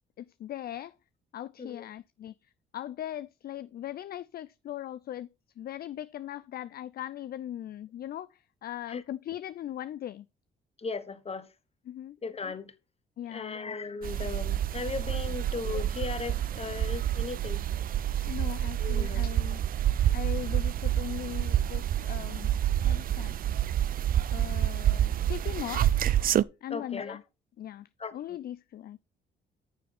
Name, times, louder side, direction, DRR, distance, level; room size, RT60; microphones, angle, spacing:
voice 1, 0.2-0.9 1.3-5.3 5.6-10.3 11.9-12.2 13.2-13.7 18.1-19.6 20.1-22.5 22.8-23.3 24.3-25.9 26.6-27.2 27.6-29.0, left 12 dB, 50° left, 0.4 m, -39 dB
voice 2, 10.8-11.5 12.2-12.7 13.3-17.6 18.8-19.3 26.7-27.2 28.0-28.1, left 5 dB, 30° left, 1.2 m, -37 dB
sound 1, 14.0-26.4, right 11 dB, 45° right, 0.4 m, -28 dB
9.4 x 6.8 x 3.5 m
cardioid pair, 90°, 20 cm